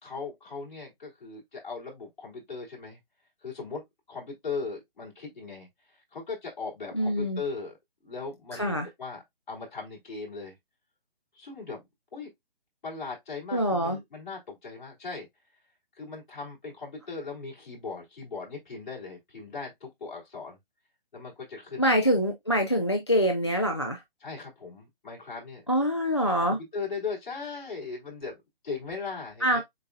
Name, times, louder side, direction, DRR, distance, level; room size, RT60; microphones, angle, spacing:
voice 1, 0.0-3.0 3.4-3.8 4.1-5.7 6.1-7.8 8.0-10.5 11.3-11.8 12.1-12.3 12.8-15.3 16.0-20.6 21.1-22.0 24.2-25.6 26.2-29.6, left 4 dB, 55° left, 3.5 m, -38 dB
voice 2, 6.9-7.4 8.5-8.9 13.5-14.0 21.8-24.0 25.7-26.6 29.4-29.6, equal, 30° left, 0.3 m, -25 dB
7.5 x 2.7 x 2.3 m
hypercardioid pair, 170°, 30 cm